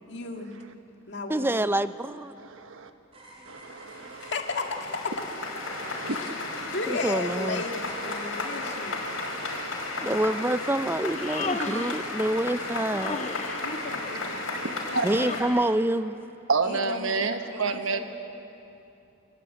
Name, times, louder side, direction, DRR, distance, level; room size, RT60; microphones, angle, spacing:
voice 1, 0.1-0.6 1.1-1.5 4.2-5.1 6.1-6.3 6.7-9.1 13.6-15.5 16.6-17.2 17.7-18.0, left 3 dB, 55° left, 3 dB, 2.3 m, -35 dB
voice 2, 1.3-2.3 6.9-7.6 10.0-13.4 15.0-16.2, right 1 dB, 10° right, 13 dB, 0.5 m, -27 dB
voice 3, 2.4-2.9 3.5-4.3 5.7-6.4 9.1-9.7 11.6-11.8 13.5-13.7 14.5-15.2 16.5-18.0, right 4 dB, 75° right, 7 dB, 1.2 m, -30 dB
sound 1, 3.1-8.8, right 1 dB, 30° right, 3.4 m, -48 dB
sound 2, 3.3-3.4 3.6-15.4, left 2 dB, 85° left, 5.3 m, -34 dB
Human voice, 11.0-12.1 12.9-13.7 15.1-15.8, left 3 dB, 30° left, 0.9 m, -34 dB
27.0 x 20.0 x 8.9 m, 2.7 s
head